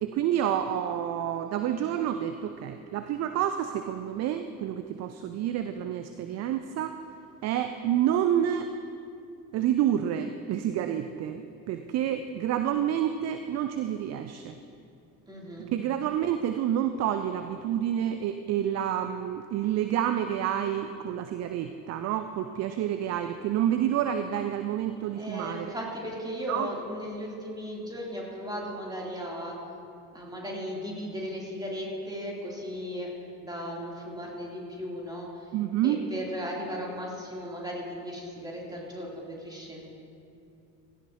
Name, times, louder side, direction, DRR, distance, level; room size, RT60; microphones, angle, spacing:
voice 1, 0.0-6.9 7.4-8.7 9.5-11.4 11.7-14.6 15.7-25.7 26.5-26.7 35.5-36.0, right 10 dB, 35° right, 8 dB, 0.5 m, -28 dB
voice 2, 15.3-15.7 25.1-29.6 30.1-33.1 33.4-35.3 35.8-39.9, equal, 10° right, -3 dB, 3.0 m, -36 dB
16.0 x 12.5 x 2.9 m, 2.5 s
figure-of-eight pair, 60°, 49 cm